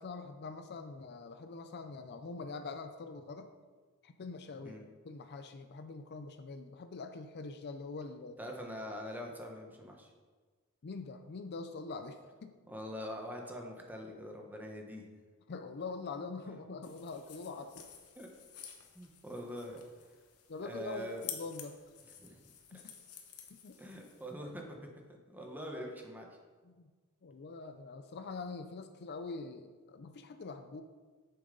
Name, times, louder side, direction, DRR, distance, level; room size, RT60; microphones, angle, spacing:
voice 1, 0.0-3.5 4.0-8.4 10.8-12.6 15.5-17.9 20.5-21.8 22.7-22.9 23.5-23.8 26.6-26.9 27.2-30.8, left 3 dB, 50° left, 8 dB, 0.5 m, -44 dB
voice 2, 8.4-10.1 12.7-15.0 18.2-18.3 18.9-19.8 20.6-21.2 22.2-22.8 23.8-24.9 25.3-26.3, equal, 10° right, 1 dB, 1.0 m, -44 dB
sound 1, 16.8-24.3, left 8 dB, 85° left, 1.1 m, -51 dB
8.8 x 7.0 x 3.8 m, 1.4 s
head